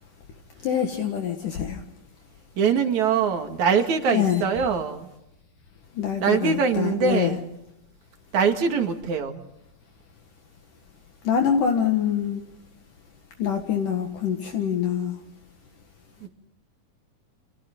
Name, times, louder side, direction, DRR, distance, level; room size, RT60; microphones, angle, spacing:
voice 1, 0.6-1.8 4.1-4.4 6.0-7.4 11.2-12.4 13.4-15.1, left 8 dB, 65° left, 3 dB, 3.1 m, -25 dB
voice 2, 2.6-5.1 6.2-7.4 8.3-9.5 16.2-16.3, right 6 dB, 55° right, 5 dB, 3.3 m, -23 dB
29.5 x 27.0 x 3.9 m, 0.85 s
omnidirectional pair, 4.1 m